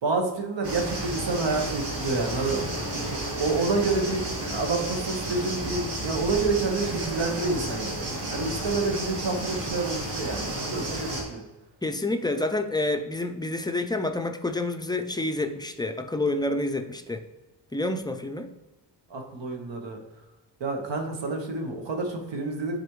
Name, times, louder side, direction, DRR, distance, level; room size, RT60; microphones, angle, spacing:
voice 1, 0.0-2.6 2.9-11.4 19.1-20.0 20.6-22.8, right 3 dB, 85° right, 3 dB, 1.4 m, -28 dB
sound 1, 0.6-11.2, right 1 dB, 65° right, 2.4 m, -32 dB
voice 2, 11.8-17.2 17.7-18.5, left 2 dB, 10° left, 6 dB, 0.3 m, -28 dB
10.0 x 4.3 x 3.1 m, 1.1 s
wide cardioid pair, 160°, 43 cm